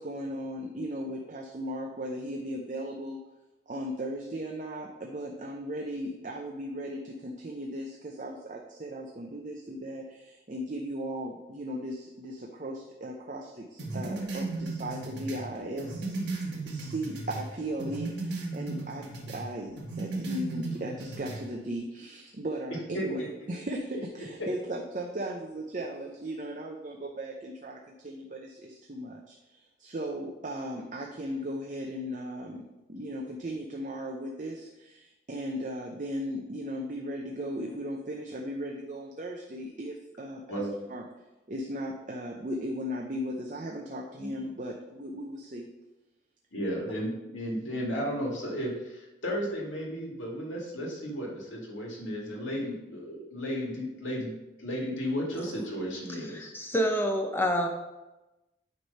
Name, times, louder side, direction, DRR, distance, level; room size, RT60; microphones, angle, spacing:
voice 1, 0.0-3.2 3.7-16.1 16.6-23.2 23.5-40.6 40.9-41.0 41.5-45.7, equal, 40° right, 0 dB, 0.6 m, -37 dB
sound 1, 13.8-17.5 17.8-19.4 19.8-21.4, right 2 dB, 70° right, 1.6 m, -35 dB
voice 2, 22.9-23.5 40.5-40.7 44.2-44.3 46.5-54.3 54.6-56.5, equal, 85° left, -2 dB, 2.2 m, -34 dB
voice 3, 56.1-57.7, equal, 10° left, 3 dB, 0.7 m, -28 dB
9.4 x 3.3 x 5.4 m, 1.0 s
head